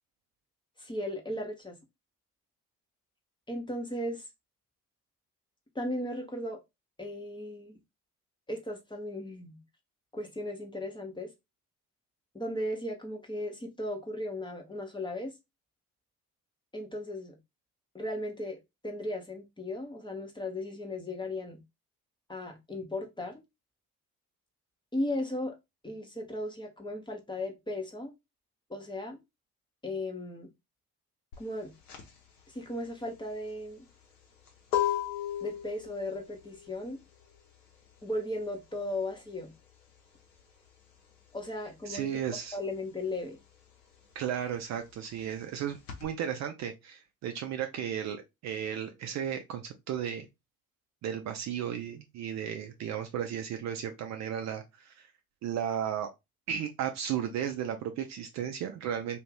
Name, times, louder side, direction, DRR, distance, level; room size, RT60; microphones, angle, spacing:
voice 1, 0.8-1.8 3.5-4.3 5.7-6.6 7.0-7.8 8.5-9.6 10.1-11.3 12.3-15.3 16.7-17.4 17.9-18.6 18.8-21.6 22.3-23.4 24.9-25.5 25.8-28.1 28.7-29.2 29.8-30.5 31.4-31.7 32.5-33.9 35.4-37.0 38.0-39.5 41.3-43.4, left 1 dB, 10° left, 0.7 m, -36 dB
sound 1, 31.3-41.6 41.8-46.0, left 11 dB, 75° left, 0.9 m, -37 dB
voice 2, 41.9-42.6 44.1-50.3 51.0-55.1 55.4-56.1 56.5-59.2, right 9 dB, 40° right, 0.5 m, -34 dB
2.5 x 2.4 x 3.2 m
figure-of-eight pair, 60°, 45 cm